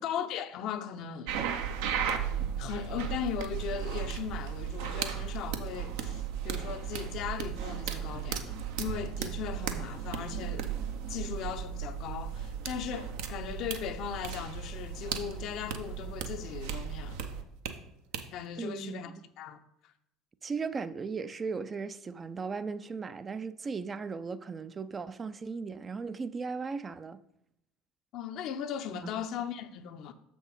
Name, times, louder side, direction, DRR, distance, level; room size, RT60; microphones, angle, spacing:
voice 1, 0.0-1.4 2.6-10.7 11.1-17.2 18.3-19.9 28.1-30.1, left 8 dB, 55° left, 0.6 m, -38 dB
sound 1, 1.3-17.7 18.1-18.2, right 8 dB, 70° right, 0.7 m, -35 dB
voice 2, 18.6-19.1 20.4-27.2 28.9-29.3, right 5 dB, 30° right, 0.4 m, -37 dB
7.0 x 6.0 x 4.0 m
hypercardioid pair, 65°, 0 cm